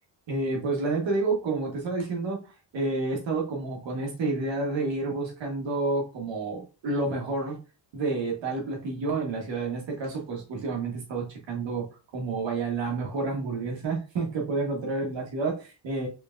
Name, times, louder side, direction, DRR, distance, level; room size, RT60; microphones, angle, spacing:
voice 1, 0.3-7.6 7.9-11.9 12.1-16.1, right 3 dB, 80° right, 0 dB, 1.4 m, -29 dB
4.4 x 3.4 x 2.5 m, 0.32 s
wide cardioid pair, 135°, 44 cm